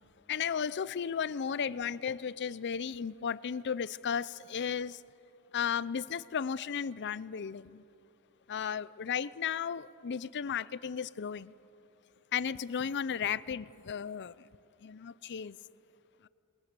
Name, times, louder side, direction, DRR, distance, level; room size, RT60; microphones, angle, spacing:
voice 1, 0.3-5.0 5.5-7.8 8.5-11.5 12.3-14.3 14.8-15.6, left 7 dB, 55° left, 18 dB, 0.5 m, -34 dB
27.0 x 21.5 x 6.8 m, 2.6 s
head